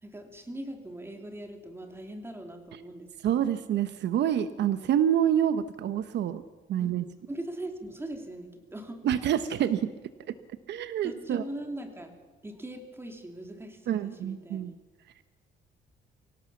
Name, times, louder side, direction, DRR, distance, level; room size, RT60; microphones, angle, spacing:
voice 1, 0.0-3.6 6.8-9.0 11.0-12.2 12.4-14.7, right 1 dB, 10° right, 5 dB, 3.0 m, -41 dB
voice 2, 3.2-6.4 6.7-7.0 9.0-9.9 10.7-11.4 13.9-14.7, right 10 dB, 65° right, 12 dB, 0.9 m, -27 dB
23.5 x 17.5 x 7.1 m, 1.3 s
cardioid pair, 125°, 19 cm